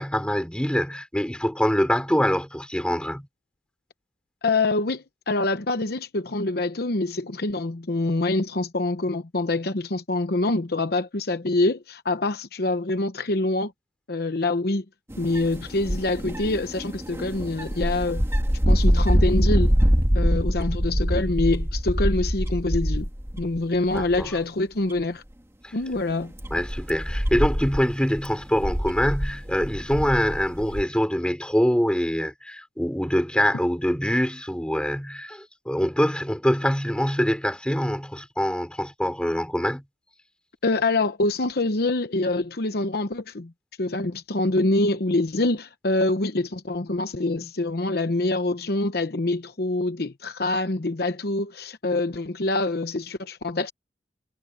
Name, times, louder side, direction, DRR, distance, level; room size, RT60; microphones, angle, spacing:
voice 1, 0.0-3.3 23.9-24.3 25.6-25.7 26.5-39.8, equal, 5° left, 4.2 m, -24 dB
voice 2, 4.4-13.7 14.1-14.8 15.2-18.3 18.7-19.7 20.1-23.1 23.4-25.2 25.7-26.3 40.6-43.5 43.8-53.7, left 2 dB, 60° left, 0.9 m, -25 dB
sound 1, 15.1-23.6 23.9-24.4 24.9-25.0 25.9-30.8, equal, 15° right, 2.2 m, -24 dB
head